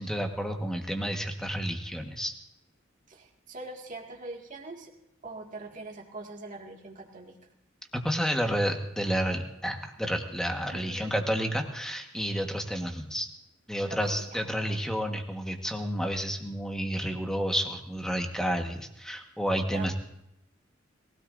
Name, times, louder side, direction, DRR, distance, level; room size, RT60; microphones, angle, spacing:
voice 1, 0.0-2.3 7.9-13.3 13.7-19.9, equal, 5° left, 3 dB, 1.4 m, -30 dB
voice 2, 3.1-4.9 5.2-7.4 10.7-11.2 13.9-14.4 19.7-19.9, right 2 dB, 40° right, 0 dB, 2.1 m, -42 dB
22.0 x 16.5 x 2.6 m, 0.82 s
head